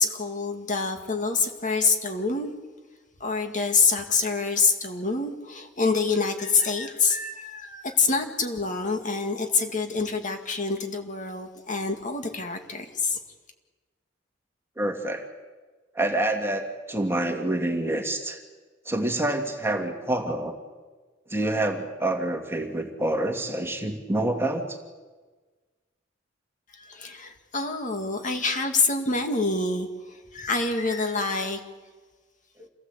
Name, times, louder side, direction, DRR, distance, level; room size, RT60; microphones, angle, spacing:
voice 1, 0.0-2.5 3.2-13.2 26.7-31.6, left 4 dB, 40° left, 5 dB, 2.2 m, -26 dB
voice 2, 14.8-15.2 16.0-18.4 18.9-20.5 21.3-24.8, right 1 dB, 15° right, 4 dB, 2.1 m, -27 dB
27.5 x 17.5 x 8.2 m, 1.3 s
head